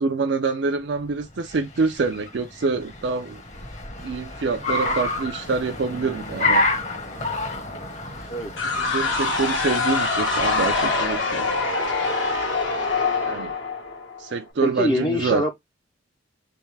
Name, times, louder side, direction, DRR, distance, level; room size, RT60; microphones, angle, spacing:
voice 1, 0.0-3.4 4.0-6.6 8.8-11.6 13.2-13.5 14.2-15.4, right 4 dB, 60° right, 0.4 m, -26 dB
Car, 1.1-11.3, left 2 dB, 40° left, 1.0 m, -29 dB
sound 1, 8.6-14.3, left 3 dB, 75° left, 1.4 m, -24 dB
voice 2, 14.6-15.5, left 1 dB, 25° left, 0.5 m, -24 dB
3.4 x 3.1 x 3.2 m
head